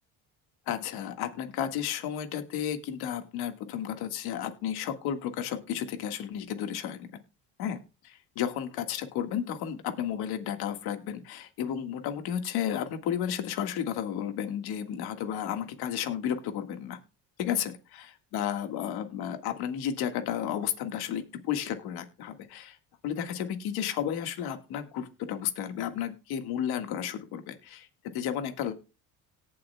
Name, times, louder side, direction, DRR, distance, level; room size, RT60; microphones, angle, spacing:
voice 1, 0.7-7.1 7.6-7.8 8.0-17.0 17.4-17.7 18.3-22.8 23.0-27.9 28.1-28.7, left 9 dB, 80° left, 6 dB, 1.8 m, -32 dB
18.0 x 7.7 x 2.3 m, 0.31 s
supercardioid pair, 85°, 37 cm